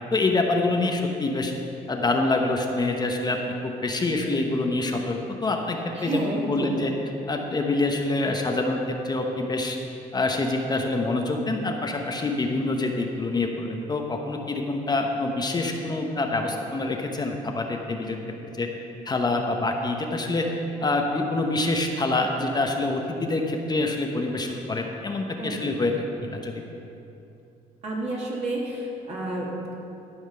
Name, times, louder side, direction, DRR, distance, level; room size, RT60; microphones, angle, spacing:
voice 1, 0.1-1.5 1.9-3.4 3.6-6.9 7.3-9.8 10.1-18.2 18.6-18.7 19.1-20.5 20.8-26.5, left 2 dB, 25° left, 2 dB, 0.9 m, -26 dB
voice 2, 5.9-6.8 25.4-25.8 27.8-29.7, right 1 dB, 40° right, -4 dB, 2.0 m, -30 dB
13.0 x 5.7 x 5.6 m, 2.8 s
cardioid pair, 110°, 17 cm